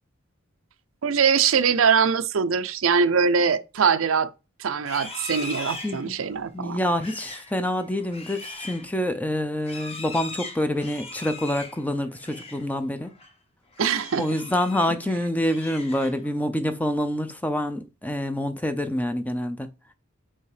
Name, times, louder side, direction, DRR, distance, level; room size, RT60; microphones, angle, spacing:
voice 1, 1.0-4.3 4.6-6.8 13.8-14.3, right 6 dB, 75° right, 0.5 m, -22 dB
Livestock farm animals working animals, 4.7-12.7 13.0-13.3 13.7-15.0 15.3-16.4, left 3 dB, 30° left, 1.3 m, -40 dB
voice 2, 5.8-6.1 6.5-13.1 14.2-19.7, left 1 dB, 10° left, 0.6 m, -27 dB
5.6 x 4.8 x 4.9 m
head